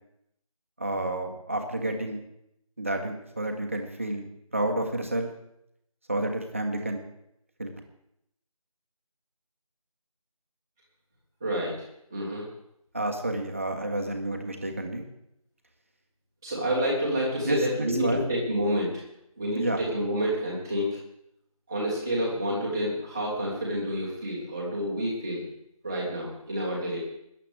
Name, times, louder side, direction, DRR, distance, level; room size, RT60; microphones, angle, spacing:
voice 1, 0.8-2.2 2.8-5.3 6.1-7.0 7.6-7.7 12.9-15.0 17.4-18.3 19.5-19.8, right 1 dB, 20° right, 4 dB, 1.2 m, -30 dB
voice 2, 11.4-11.7 12.1-12.4 16.4-19.0 19.4-21.0 21.7-25.4 25.8-27.0, equal, 5° right, -6 dB, 1.4 m, -29 dB
21.0 x 10.5 x 3.5 m, 0.77 s
figure-of-eight pair, 170°, 19 cm